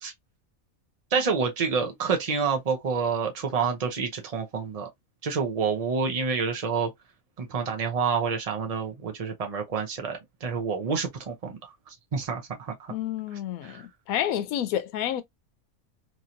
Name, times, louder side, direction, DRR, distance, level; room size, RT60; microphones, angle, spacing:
voice 1, 1.1-4.9 5.2-6.9 7.4-12.9 13.6-13.8, right 5 dB, 50° right, 0.4 m, -28 dB
voice 2, 12.9-15.2, left 11 dB, 80° left, 1.0 m, -29 dB
3.0 x 2.8 x 2.5 m
omnidirectional pair, 1.5 m